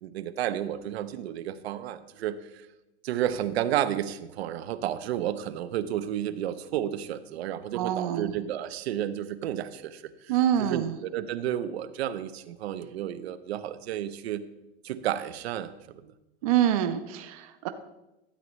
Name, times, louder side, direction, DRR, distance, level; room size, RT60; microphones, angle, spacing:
voice 1, 0.0-2.4 3.0-10.3 10.7-14.4 14.8-16.1, right 11 dB, 80° right, 12 dB, 0.7 m, -32 dB
voice 2, 7.7-8.3 10.3-11.0 16.4-17.7, right 10 dB, 35° right, 9 dB, 0.4 m, -26 dB
12.5 x 8.0 x 3.0 m, 0.97 s
supercardioid pair, 175°, 31 cm